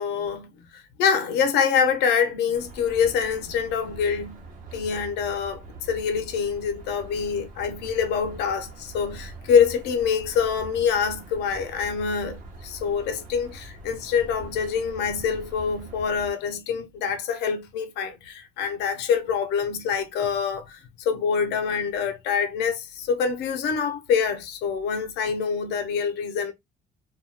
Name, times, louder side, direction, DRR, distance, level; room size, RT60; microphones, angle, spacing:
voice 1, 0.0-4.4 4.7-26.5, left 6 dB, 85° left, 0.7 m, -25 dB
sound 1, 2.5-16.3, right 2 dB, 55° right, 1.0 m, -43 dB
2.6 x 2.2 x 3.2 m
cardioid pair, 110°, 17 cm